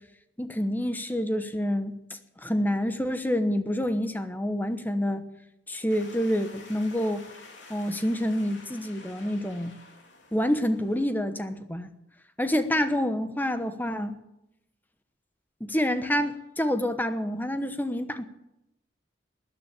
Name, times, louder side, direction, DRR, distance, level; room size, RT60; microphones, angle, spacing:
voice 1, 0.4-5.2 5.7-7.2 7.7-9.7 10.3-11.9 12.4-14.1 15.6-18.2, equal, 10° left, 1.0 m, -27 dB
sound 1, 5.9-11.0, left 3 dB, 85° left, 3.2 m, -50 dB
13.5 x 10.0 x 8.9 m
head